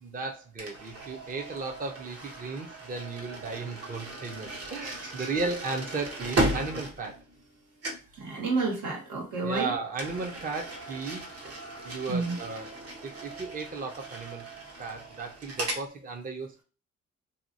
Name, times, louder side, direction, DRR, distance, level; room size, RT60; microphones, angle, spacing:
voice 1, 0.0-7.2 9.4-11.5 11.8-14.4 14.8-16.6, right 3 dB, 30° right, 3 dB, 0.6 m, -35 dB
sound 1, 0.6-7.6 7.8-8.2 9.9-15.9, right 2 dB, 50° right, 1.0 m, -36 dB
voice 2, 4.8-5.3 8.2-9.7 12.1-12.4, right 3 dB, 85° right, -1 dB, 1.6 m, -31 dB
2.8 x 2.7 x 2.6 m, 0.35 s
cardioid pair, 90°, 30 cm